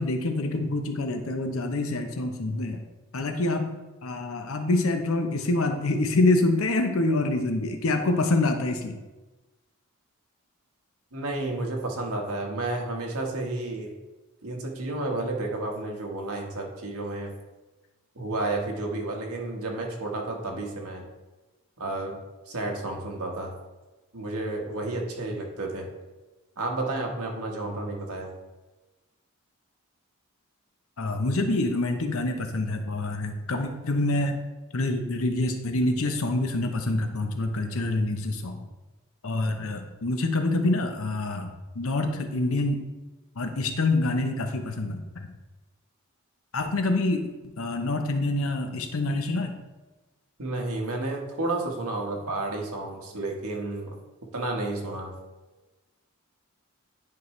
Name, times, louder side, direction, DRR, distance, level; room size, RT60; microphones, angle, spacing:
voice 1, 0.0-2.9 3.1-3.7 4.0-9.0 31.0-34.4 34.7-38.6 39.2-42.8 43.4-45.3 46.5-49.5, left 2 dB, 70° left, 6 dB, 0.8 m, -26 dB
voice 2, 11.1-13.9 14.4-17.3 18.1-21.0 21.8-22.2 22.5-23.5 24.1-25.9 26.6-28.3 50.4-53.9 54.3-55.1, right 2 dB, 80° right, 0 dB, 1.4 m, -31 dB
9.5 x 4.7 x 3.2 m, 1.2 s
head